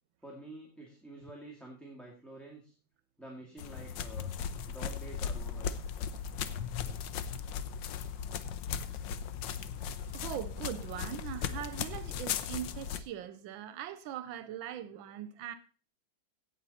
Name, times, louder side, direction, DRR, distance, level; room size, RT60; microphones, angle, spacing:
voice 1, 0.2-2.7 3.2-4.3 4.7-5.7 8.7-8.8, right 1 dB, ahead, 2.0 m, -48 dB
sound 1, 3.6-13.0, left 7 dB, 75° left, 1.5 m, -37 dB
voice 2, 10.1-15.5, right 10 dB, 85° right, 1.5 m, -41 dB
17.0 x 7.0 x 4.2 m
omnidirectional pair, 2.1 m